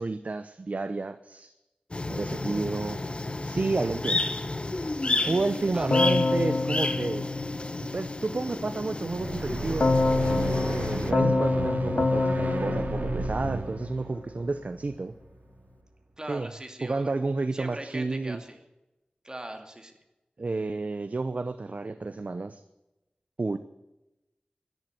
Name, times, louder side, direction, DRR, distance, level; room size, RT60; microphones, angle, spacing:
voice 1, 0.0-1.5 2.1-3.0 3.4-4.2 5.2-7.3 7.8-10.0 10.7-15.1 16.3-16.5 16.8-18.4 20.4-22.6 23.4-23.6, right 3 dB, 55° right, 11 dB, 0.7 m, -31 dB
sound 1, 1.9-11.1, left 2 dB, 40° left, 1.1 m, -31 dB
voice 2, 5.7-6.1 16.2-17.1 17.5-18.6 19.2-19.9, right 1 dB, 25° right, 5 dB, 2.5 m, -40 dB
Keyboard (musical), 5.9-8.2 9.8-14.1, left 3 dB, 65° left, 1.1 m, -27 dB
sound 2, 9.0-15.3, right 3 dB, 75° right, 2.4 m, -33 dB
12.0 x 11.0 x 9.2 m, 0.97 s
wide cardioid pair, 70°, 3 cm